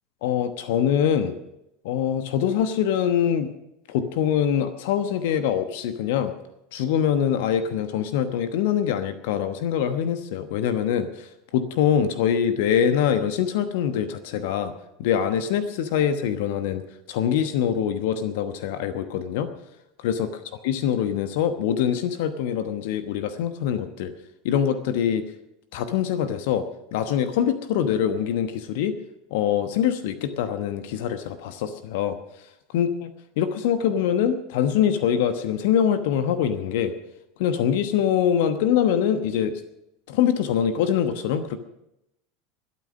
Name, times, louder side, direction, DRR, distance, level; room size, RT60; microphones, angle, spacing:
voice 1, 0.2-1.4 1.8-3.5 3.9-6.3 6.7-14.7 15.0-16.8 17.1-19.5 20.0-20.3 20.6-24.1 24.4-25.2 25.7-26.6 26.9-29.0 29.3-32.2 32.7-33.1 33.4-36.9 37.4-39.5 40.1-41.6, left 9 dB, 60° left, 11 dB, 1.1 m, -24 dB
22.0 x 8.7 x 6.3 m, 0.85 s
figure-of-eight pair, 75°, 0 cm